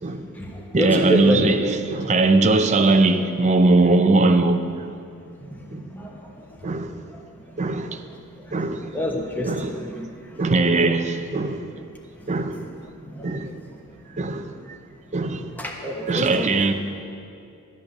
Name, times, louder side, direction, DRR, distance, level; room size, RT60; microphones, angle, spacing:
voice 1, 0.2-1.5 5.4-6.7 7.1-7.2 8.3-10.4 13.0-13.5 15.3-16.5, equal, 10° left, 1.2 m, -28 dB
voice 2, 0.7-4.9 5.7-5.9 6.6-6.9 7.6-8.0 8.5-8.9 9.4-9.8 10.4-11.7 12.3-12.6 13.2-13.5 14.2-14.5 15.1-15.5 16.1-16.7, right 3 dB, 30° right, 0.6 m, -20 dB
12.0 x 8.4 x 6.7 m
head